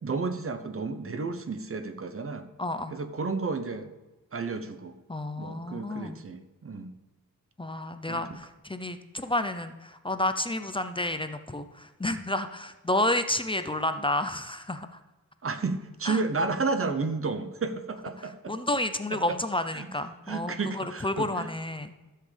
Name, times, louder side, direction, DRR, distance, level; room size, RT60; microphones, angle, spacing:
voice 1, 0.0-2.5 2.9-3.9 4.3-5.0 5.4-6.9 8.1-8.2 15.4-18.5 19.7-19.9 20.3-21.5, right 4 dB, 40° right, 9 dB, 0.8 m, -32 dB
voice 2, 2.6-3.0 5.1-6.2 7.6-15.0 16.1-16.2 18.2-21.9, left 1 dB, 15° left, 9 dB, 0.5 m, -30 dB
14.0 x 7.5 x 3.3 m, 1.1 s
wide cardioid pair, 115°, 35 cm